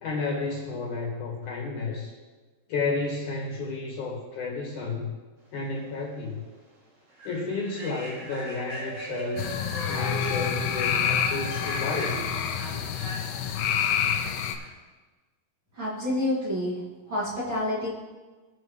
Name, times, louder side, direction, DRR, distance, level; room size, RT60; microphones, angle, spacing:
voice 1, 0.0-2.1 2.7-5.1 5.5-6.4 7.2-9.5 9.9-12.2, left 3 dB, 60° left, -3 dB, 2.6 m, -31 dB
Human voice / Train, 5.8-6.0 6.4-6.6 7.1-14.7, equal, 80° right, 5.6 m, -42 dB
Dog, 8.1-13.8, right 1 dB, 10° left, 1.3 m, -40 dB
sound 1, 9.4-14.6, left 8 dB, 80° left, 2.9 m, -28 dB
voice 2, 15.7-16.8 17.1-17.9, left 1 dB, 35° right, -8 dB, 2.4 m, -28 dB
20.0 x 6.9 x 3.2 m, 1.3 s
omnidirectional pair, 4.7 m